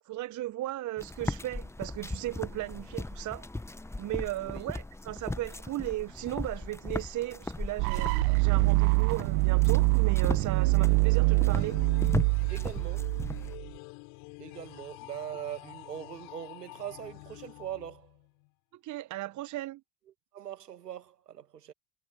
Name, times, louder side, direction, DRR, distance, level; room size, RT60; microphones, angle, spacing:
voice 1, 0.1-3.5 4.0-11.8 18.8-19.8, right 16 dB, 40° right, 1.0 m, -36 dB
sound 1, 1.0-13.5, left 2 dB, 5° left, 1.0 m, -38 dB
sound 2, 7.8-13.7, right 32 dB, 60° right, 1.3 m, -25 dB
sound 3, 11.5-18.5, left 33 dB, 60° left, 4.9 m, -48 dB
voice 2, 12.5-13.2 14.4-18.2 20.3-21.7, right 10 dB, 85° right, 2.1 m, -41 dB
hypercardioid pair, 70°, 46 cm